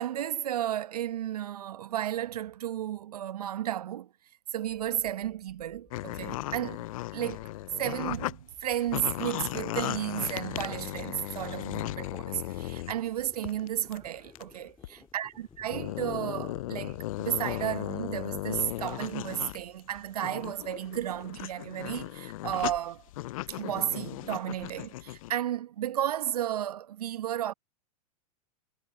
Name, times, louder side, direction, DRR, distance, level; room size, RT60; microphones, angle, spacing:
voice 1, 0.0-4.1 4.5-6.8 7.1-7.4 7.8-14.8 15.1-23.0 23.5-27.5, right 11 dB, 75° right, 1.2 m, -33 dB
sound 1, 4.7-21.7, left 4 dB, 10° left, 3.9 m, -58 dB
sound 2, 5.9-8.3 8.7-13.0 13.4-13.7 13.9-14.0 14.4-14.5 14.8-14.9 15.5-19.6 20.0-25.3, left 17 dB, 60° left, 0.4 m, -36 dB
hypercardioid pair, 115°, 20 cm